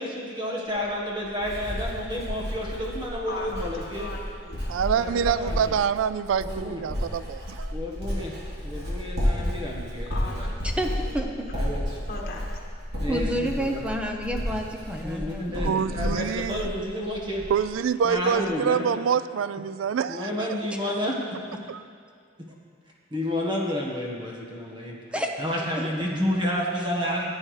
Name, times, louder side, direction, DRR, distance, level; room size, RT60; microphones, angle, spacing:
voice 1, 0.0-4.1 5.0-5.8 6.4-6.8 7.7-8.3 8.6-10.5 11.5-12.0 13.0-13.3 13.6-13.8 14.9-17.5 18.0-19.0 20.1-21.2 21.5-21.6 23.1-25.0 25.4-27.3, left 1 dB, 25° right, -3 dB, 1.3 m, -30 dB
Writing, 0.7-17.7 18.0-18.5, equal, 60° right, 3.1 m, -32 dB
voice 2, 3.3-5.2 10.1-11.3 12.1-12.6, left 2 dB, 50° left, -1 dB, 1.5 m, -40 dB
voice 3, 4.7-7.7 15.6-16.7 17.5-20.5 21.7-21.8, right 7 dB, 90° right, 15 dB, 0.3 m, -26 dB
voice 4, 10.6-11.5 13.1-16.0 20.7-20.8 25.1-25.4 25.7-25.9, equal, 5° right, 2 dB, 0.7 m, -30 dB
15.0 x 8.7 x 3.2 m, 2.1 s
head